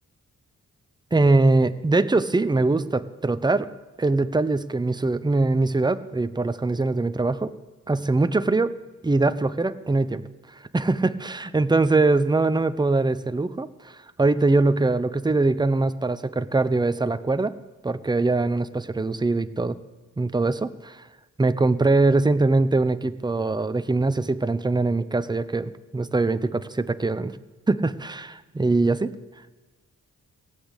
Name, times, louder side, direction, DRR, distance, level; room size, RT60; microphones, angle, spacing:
voice 1, 1.1-3.7 4.0-7.5 7.9-8.7 9.0-10.2 10.7-13.9 14.2-17.5 17.8-19.8 20.2-21.0 21.4-27.3 27.7-29.1, right 3 dB, 15° right, 12 dB, 0.6 m, -22 dB
16.5 x 8.3 x 8.2 m, 1.3 s
cardioid pair, 90°, 32 cm